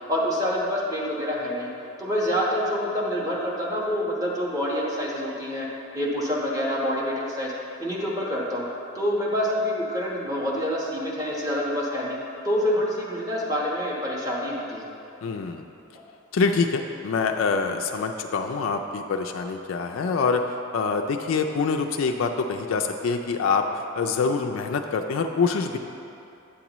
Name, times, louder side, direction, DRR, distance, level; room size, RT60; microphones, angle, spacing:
voice 1, 0.1-1.7 2.0-5.7 5.9-7.5 7.8-8.7 8.9-12.2 12.4-14.8, equal, 15° right, -5 dB, 1.1 m, -26 dB
voice 2, 15.2-15.6 16.3-25.8, left 4 dB, 70° left, 4 dB, 0.3 m, -25 dB
8.5 x 7.2 x 3.0 m, 2.8 s
head